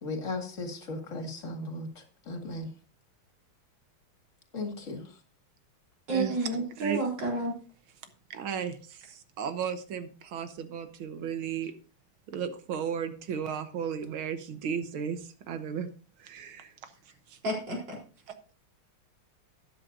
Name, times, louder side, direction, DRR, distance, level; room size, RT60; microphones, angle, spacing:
voice 1, 0.0-2.7 4.5-5.2, left 2 dB, 40° left, 2.4 m, -37 dB
voice 2, 6.1-7.5 17.4-18.0, right 2 dB, 60° right, 4.8 m, -30 dB
voice 3, 8.3-11.7 12.3-15.2 15.5-15.9 16.2-16.7 17.3-17.4 18.3-18.4, right 7 dB, 85° right, 1.8 m, -34 dB
12.5 x 9.9 x 2.6 m
omnidirectional pair, 2.2 m